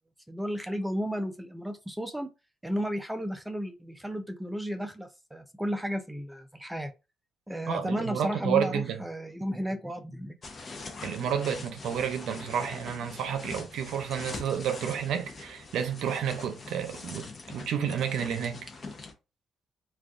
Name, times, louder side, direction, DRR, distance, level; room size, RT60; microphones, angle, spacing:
voice 1, 0.3-2.3 2.6-6.9 7.5-10.4, equal, 5° right, 0.4 m, -33 dB
voice 2, 7.7-9.0 11.0-18.7, right 8 dB, 80° right, 0.6 m, -30 dB
sound 1, 10.4-19.1, left 3 dB, 40° left, 0.7 m, -43 dB
2.4 x 2.3 x 3.5 m
cardioid pair, 90°, 0 cm